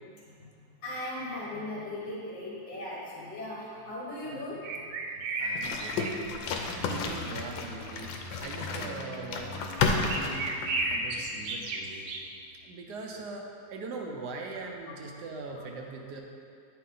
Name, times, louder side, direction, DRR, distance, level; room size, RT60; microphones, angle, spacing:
voice 1, 0.8-4.8 10.9-11.1, left 1 dB, 70° left, -8 dB, 2.3 m, -38 dB
sound 1, 4.6-6.1 6.5-7.0 9.9-12.2, right 3 dB, 90° right, 1.4 m, -33 dB
voice 2, 5.4-6.5 6.7-8.1 8.4-10.4 10.9-12.1 12.6-16.2, right 3 dB, 65° right, 1 dB, 1.2 m, -41 dB
sound 2, 5.6-11.0, left 4 dB, 85° left, 1.4 m, -32 dB
sound 3, 6.3-12.7 13.0-13.1, left 3 dB, ahead, 1.1 m, -46 dB
9.0 x 4.6 x 3.9 m, 2.3 s
omnidirectional pair, 2.0 m